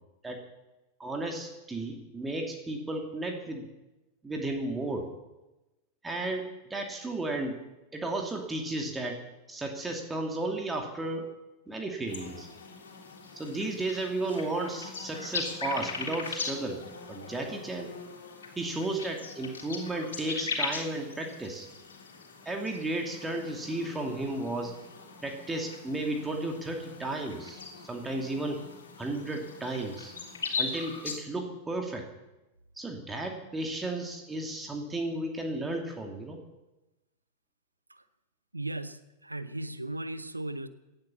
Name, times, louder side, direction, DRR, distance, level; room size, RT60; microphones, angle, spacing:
voice 1, 1.0-3.7 4.2-5.0 6.0-6.4 6.7-7.6 7.9-9.2 9.5-11.2 11.7-12.5 13.3-16.8 17.1-17.9 18.6-21.7 22.4-24.7 25.2-27.6 27.9-28.6 29.0-30.1 30.6-32.0 32.8-36.4, right 2 dB, 10° right, 2 dB, 2.5 m, -33 dB
sound 1, 12.1-31.2, left 4 dB, 65° left, 3.5 m, -40 dB
voice 2, 38.5-40.7, right 2 dB, 85° right, 13 dB, 0.9 m, -37 dB
18.0 x 11.5 x 6.9 m, 1.0 s
figure-of-eight pair, 90°, 0 cm